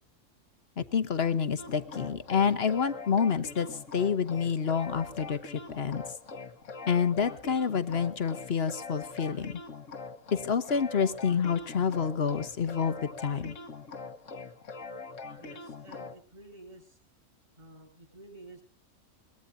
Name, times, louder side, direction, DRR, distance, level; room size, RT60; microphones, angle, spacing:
voice 1, 0.8-6.0 6.9-9.6 10.3-13.5, left 6 dB, 50° left, 11 dB, 1.2 m, -28 dB
sound 1, 1.6-16.2, left 4 dB, 70° left, 1.6 m, -43 dB
voice 2, 15.4-17.0 17.6-18.6, right 2 dB, 35° right, 4 dB, 7.7 m, -51 dB
23.0 x 20.0 x 2.7 m, 0.38 s
omnidirectional pair, 1.4 m